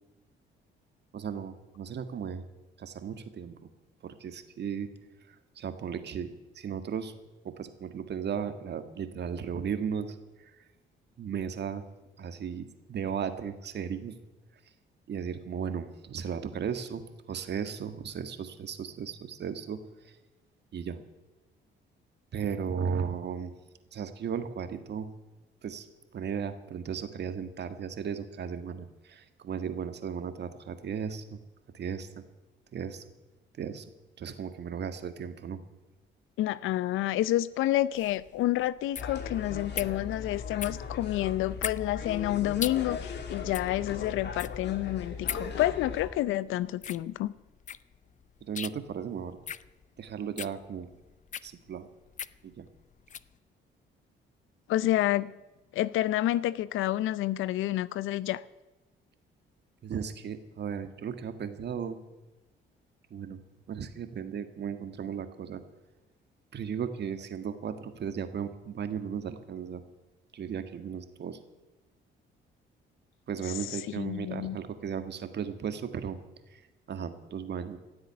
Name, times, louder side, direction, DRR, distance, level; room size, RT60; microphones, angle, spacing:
voice 1, 1.1-2.4 2.8-3.7 4.0-4.9 5.3-7.1 7.4-10.2 11.2-11.8 12.2-14.1 15.1-19.8 20.0-20.2 20.7-21.0 22.3-23.5 23.9-25.1 25.6-25.8 26.1-31.4 31.7-32.2 32.7-33.0 33.6-33.8 34.2-35.6 48.5-49.4 50.0-50.9 51.4-51.9 52.4-52.7 59.8-62.0 63.1-63.4 63.7-65.6 66.5-69.8 70.3-71.4 73.3-76.2 76.5-76.6 76.9-77.8, right 7 dB, 60° right, 1.7 m, -36 dB
voice 2, 36.4-47.3 54.7-55.3 55.7-58.4 74.0-74.6, left 14 dB, 90° left, 0.6 m, -29 dB
sound 1, 37.9-53.3, left 8 dB, 40° left, 0.5 m, -41 dB
sound 2, 39.0-46.1, left 5 dB, 60° left, 2.3 m, -38 dB
16.0 x 8.0 x 9.6 m
cardioid pair, 90°, 20 cm